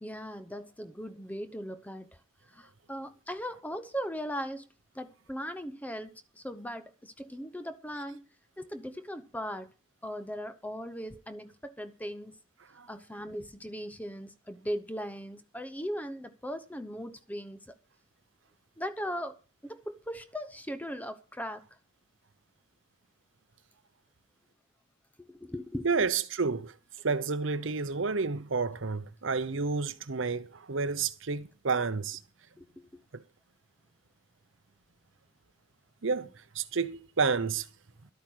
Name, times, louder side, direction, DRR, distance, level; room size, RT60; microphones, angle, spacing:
voice 1, 0.0-2.1 2.5-4.7 4.9-8.3 8.6-9.7 10.0-12.3 12.9-17.8 18.8-19.4 19.6-21.6 25.2-26.1 32.6-33.0, equal, 5° left, 0.7 m, -38 dB
voice 2, 25.8-26.8 27.0-32.2 33.1-33.2 36.0-36.3 36.5-37.7, right 4 dB, 65° right, 0.8 m, -30 dB
12.0 x 8.7 x 6.2 m
head